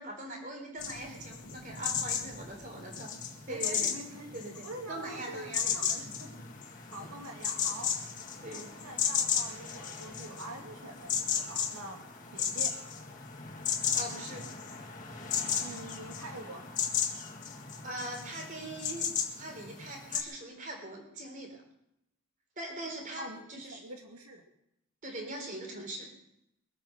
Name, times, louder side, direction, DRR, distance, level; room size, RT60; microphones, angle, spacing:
voice 1, 0.0-3.1 3.5-3.9 4.3-5.8 7.0-7.1 8.4-8.7 13.9-14.5 17.8-19.1 19.4-21.6 22.6-23.8 25.0-26.1, right 1 dB, 35° right, 2 dB, 4.0 m, -41 dB
sound 1, 0.8-20.2, left 7 dB, 35° left, 1.9 m, -35 dB
voice 2, 3.5-4.4 4.6-6.3 6.9-7.9 8.5-12.0 12.3-12.7 15.6-16.6 23.2-24.4, right 2 dB, 90° right, 2 dB, 2.4 m, -45 dB
22.5 x 8.9 x 6.5 m, 0.82 s
head